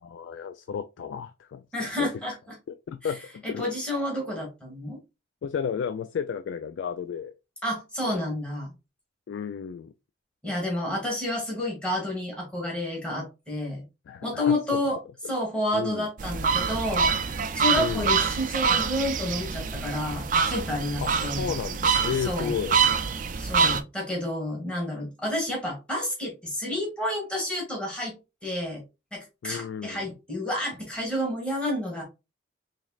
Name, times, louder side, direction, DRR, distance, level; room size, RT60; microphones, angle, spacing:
voice 1, 0.0-1.6 2.0-2.1 2.9-3.7 5.4-7.3 8.1-8.2 9.3-9.9 14.1-14.5 15.7-16.1 17.7-18.2 21.0-22.8 29.4-30.1, left 7 dB, 90° left, 0.3 m, -33 dB
voice 2, 1.7-2.3 3.0-3.1 3.4-5.0 7.6-8.7 10.4-13.9 14.2-15.0 15.3-17.1 17.5-21.5 22.2-22.5 23.4-28.2 28.4-28.8 29.1-32.0, left 1 dB, 5° left, 1.4 m, -30 dB
sound 1, 16.2-23.8, right 5 dB, 45° right, 0.4 m, -25 dB
4.0 x 3.2 x 2.3 m
head